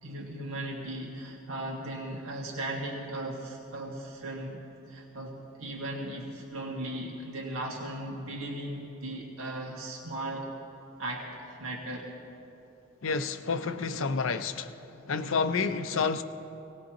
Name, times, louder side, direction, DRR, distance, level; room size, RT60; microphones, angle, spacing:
voice 1, 0.0-10.5 11.0-12.1, right 1 dB, 85° right, 1.9 m, -37 dB
voice 2, 13.0-14.7 15.1-16.2, left 4 dB, 75° left, 0.6 m, -29 dB
25.5 x 18.5 x 3.0 m
head